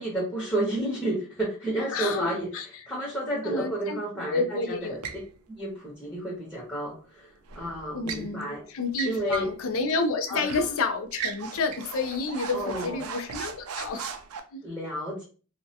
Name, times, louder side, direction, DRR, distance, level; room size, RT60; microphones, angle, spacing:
voice 1, 0.0-2.5 2.9-5.0 5.5-7.3 7.5-8.6 9.0-9.5 10.3-10.7 12.5-13.0 14.6-15.2, right 1 dB, 10° left, -6 dB, 0.7 m, -31 dB
voice 2, 1.9-2.7 3.4-5.0 7.9-14.1 14.5-14.6, left 3 dB, 70° left, 8 dB, 0.4 m, -30 dB
sound 1, 5.0-5.3 7.5-8.3 8.9-9.5 9.9-10.0 10.5-10.7 11.1-14.4, right 6 dB, 80° right, 0.4 m, -37 dB
2.2 x 2.1 x 2.7 m, 0.38 s
head